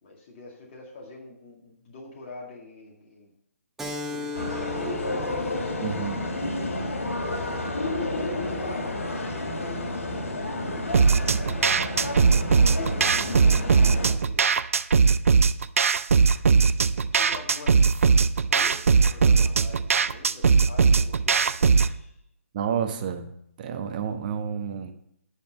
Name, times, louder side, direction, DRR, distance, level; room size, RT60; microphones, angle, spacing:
voice 1, 0.0-3.3 4.1-5.3 7.1-7.7 7.9-11.8 13.6-14.5 17.1-18.2 18.5-22.2, left 2 dB, 35° left, -2 dB, 2.0 m, -45 dB
Keyboard (musical), 3.8-8.9, left 3 dB, 5° right, 0.7 m, -39 dB
sound 1, 4.3-14.1, left 2 dB, 65° left, 2.4 m, -30 dB
voice 2, 5.8-6.2 22.5-23.3 23.6-24.9, right 7 dB, 35° right, 5 dB, 1.1 m, -30 dB
sound 2, 10.9-21.9, right 5 dB, 65° right, 0.5 m, -20 dB
10.5 x 4.3 x 6.7 m, 0.73 s
figure-of-eight pair, 145°, 8 cm